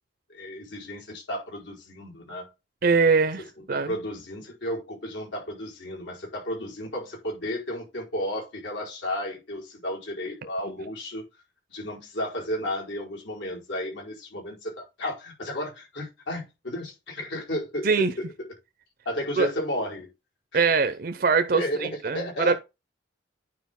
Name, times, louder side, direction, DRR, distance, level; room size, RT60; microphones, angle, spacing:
voice 1, 0.3-2.5 3.7-11.2 11.7-18.1 18.4-18.5 19.0-20.1 21.5-22.6, left 1 dB, 80° left, 4.7 m, -33 dB
voice 2, 2.8-4.0 17.8-18.1 19.4-19.5 20.5-22.6, right 4 dB, 50° right, 0.6 m, -23 dB
9.4 x 4.9 x 3.7 m
head